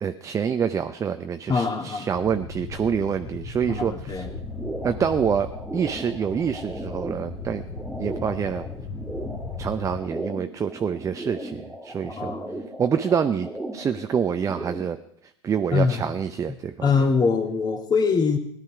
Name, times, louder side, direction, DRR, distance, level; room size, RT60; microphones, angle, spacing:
voice 1, 0.0-4.2 4.8-7.6 8.0-8.6 9.6-12.3 12.8-15.0 15.4-16.7, right 7 dB, 20° right, 9 dB, 0.6 m, -26 dB
voice 2, 1.5-2.3 3.7-4.3 12.0-12.6 15.7-16.2 16.5-18.4, left 5 dB, 25° left, 4 dB, 2.3 m, -24 dB
sound 1, 2.1-10.0, left 4 dB, 60° left, 2.1 m, -37 dB
sound 2, 4.2-15.0, right 1 dB, ahead, 2.4 m, -37 dB
17.5 x 11.5 x 4.7 m, 0.74 s
hypercardioid pair, 90°, 15 cm